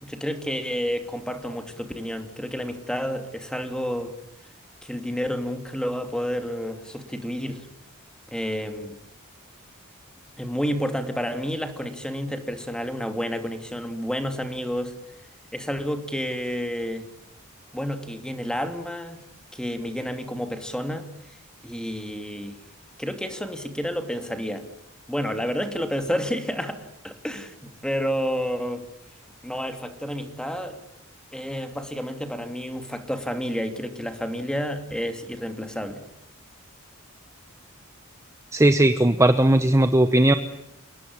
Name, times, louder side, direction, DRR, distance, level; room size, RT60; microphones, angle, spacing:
voice 1, 0.0-4.1 4.8-7.7 8.3-8.9 10.4-14.9 15.5-17.1 17.7-19.2 19.5-21.0 21.6-22.6 23.0-24.7 25.1-28.9 29.4-30.8 31.3-36.0, equal, 5° left, 7 dB, 2.8 m, -30 dB
voice 2, 38.5-40.3, right 1 dB, 15° right, 9 dB, 1.0 m, -18 dB
29.0 x 19.0 x 9.8 m, 0.80 s
head